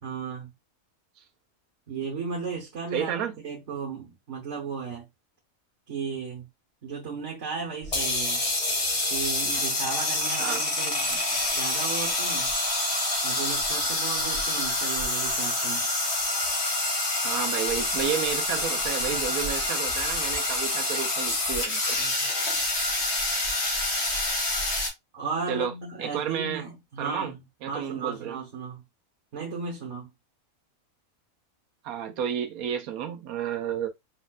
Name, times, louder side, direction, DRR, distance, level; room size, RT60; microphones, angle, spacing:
voice 1, 0.0-0.5 1.9-3.2 3.4-5.1 5.9-6.5 6.8-8.4 9.1-12.5 13.2-15.9 19.0-19.2 22.0-22.1 25.1-27.4 27.7-28.8 29.3-30.1, right 5 dB, 60° right, 1.5 m, -35 dB
voice 2, 2.9-3.3 10.4-10.6 17.2-22.0 25.5-25.7 26.0-26.6 27.0-27.3 27.6-28.4 31.8-33.9, right 8 dB, 85° right, 1.1 m, -31 dB
sound 1, 7.8-24.9, left 2 dB, 50° left, 2.0 m, -27 dB
5.1 x 4.2 x 2.4 m
omnidirectional pair, 1.5 m